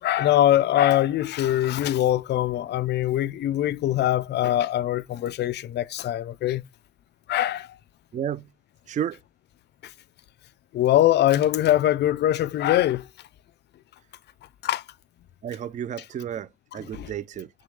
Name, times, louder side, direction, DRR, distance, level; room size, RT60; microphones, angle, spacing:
voice 1, 0.0-6.6 7.3-7.7 10.7-13.1 14.6-14.8 16.9-17.1, left 13 dB, 60° left, 0.4 m, -22 dB
voice 2, 8.1-8.5 8.9-9.2 15.4-17.5, right 9 dB, 40° right, 0.4 m, -32 dB
6.1 x 2.2 x 3.2 m
cardioid pair, 90°, 20 cm